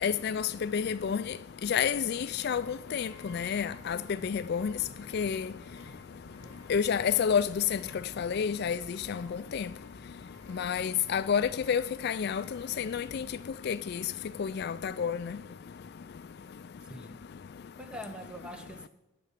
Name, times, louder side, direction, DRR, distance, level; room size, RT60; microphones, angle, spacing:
voice 1, 0.0-1.2 1.6-4.0 4.2-4.7 5.1-5.5 6.7-7.8 8.2-8.8 9.1-9.3 9.5-9.7 10.5-13.3 13.7-14.0 14.4-15.3, left 7 dB, 50° left, 0.3 m, -29 dB
sound 1, 2.5-13.4, left 1 dB, 20° right, 2.7 m, -55 dB
Scratching (performance technique), 3.2-3.3 3.7-3.9 4.5-5.4 5.8-6.0 6.3-6.6 7.0-7.9 8.4-8.5 8.9-9.2 9.6-10.6 11.0-11.1 11.5-13.3, right 1 dB, 70° right, 4.4 m, -58 dB
voice 2, 16.8-17.2 17.8-18.9, equal, 5° right, 1.0 m, -43 dB
11.0 x 6.8 x 9.3 m
head